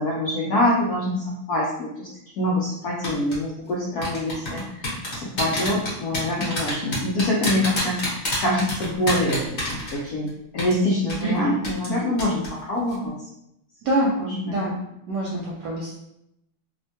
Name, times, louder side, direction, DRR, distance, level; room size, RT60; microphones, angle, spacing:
voice 1, 0.0-2.1 2.4-13.3 14.2-14.8, left 1 dB, 85° left, -4 dB, 0.8 m, -25 dB
sound 1, 3.0-3.3 4.0-10.3 10.6-10.7 11.1-11.2 11.6-11.9 12.2-12.5 12.8-12.9, left 1 dB, 45° left, 1.2 m, -27 dB
voice 2, 11.2-11.5 13.8-14.2 14.4-14.8 15.1-16.0, right 1 dB, 80° right, -4 dB, 0.9 m, -25 dB
3.5 x 2.1 x 2.7 m, 0.82 s
omnidirectional pair, 2.3 m